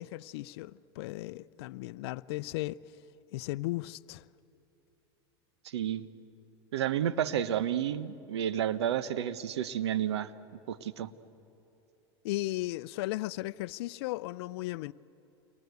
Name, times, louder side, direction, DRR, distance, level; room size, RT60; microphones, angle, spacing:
voice 1, 0.0-2.8 3.3-4.3 12.2-14.9, left 18 dB, 70° left, 0.6 m, -36 dB
voice 2, 5.6-6.1 6.7-10.3 10.7-11.1, right 10 dB, 90° right, 1.1 m, -31 dB
29.5 x 24.0 x 8.2 m
supercardioid pair, 115°, 14 cm